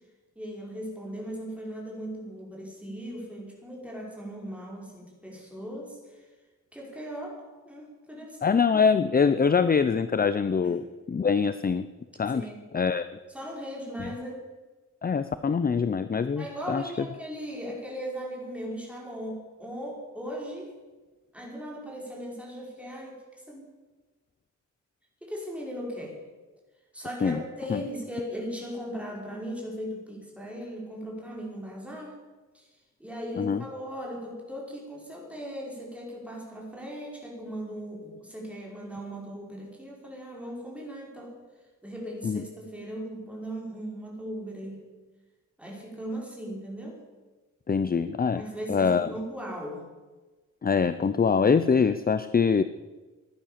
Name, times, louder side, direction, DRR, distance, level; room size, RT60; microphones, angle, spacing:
voice 1, 0.4-6.3 6.7-8.6 10.6-10.8 12.3-12.7 13.3-14.4 16.4-20.7 21.3-23.7 25.2-26.2 26.9-32.2 32.5-32.7 33.0-41.4 41.8-44.8 45.6-47.0 48.3-49.9, equal, 5° right, -2 dB, 5.6 m, -38 dB
voice 2, 8.4-11.9 12.2-12.4 12.7-13.1 14.0-14.1 15.0-16.8 27.2-27.4 27.7-27.8 33.4-33.6 42.2-42.4 47.7-48.4 48.7-49.1 50.6-52.6, left 5 dB, 30° left, 13 dB, 0.6 m, -24 dB
16.5 x 11.0 x 7.4 m, 1.2 s
wide cardioid pair, 120°, 30 cm